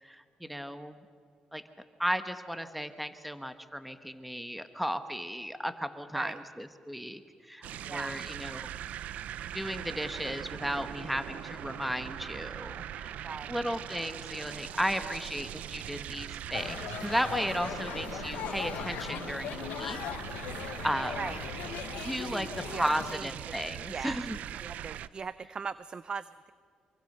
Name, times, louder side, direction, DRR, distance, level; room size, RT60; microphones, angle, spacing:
voice 1, 0.0-1.0 1.5-1.6 2.0-8.7 9.5-13.1 13.5-20.0 20.6-21.3 22.0-24.4, equal, ahead, 10 dB, 1.2 m, -35 dB
sound 1, 7.6-25.1, right 11 dB, 75° right, 0.6 m, -41 dB
voice 2, 7.9-8.3 13.2-13.8 15.0-15.2 21.2-21.4 22.2-23.3 23.9-24.2 24.6-26.5, right 5 dB, 40° right, 16 dB, 0.5 m, -40 dB
sound 2, 16.5-23.2, left 10 dB, 85° left, 1.0 m, -39 dB
25.5 x 24.0 x 6.7 m, 2.3 s
cardioid pair, 105°, 2 cm